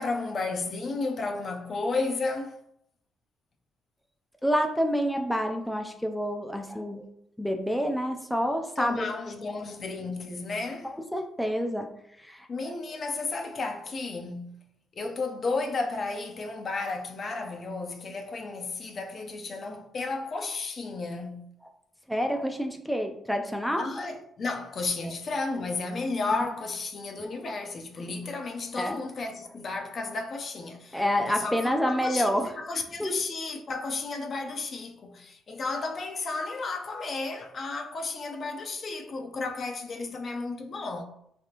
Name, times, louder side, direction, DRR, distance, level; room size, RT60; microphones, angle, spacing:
voice 1, 0.0-2.6 8.8-10.9 12.5-14.6 15.0-21.5 23.8-41.0, left 3 dB, 45° left, 0.6 m, -33 dB
voice 2, 4.4-7.1 7.4-9.3 11.1-11.9 12.2-12.7 22.1-24.1 25.0-25.1 28.8-29.0 30.9-32.5 33.0-33.2, equal, ahead, 0.4 m, -28 dB
3.4 x 3.3 x 2.9 m
cardioid pair, 90°, 0 cm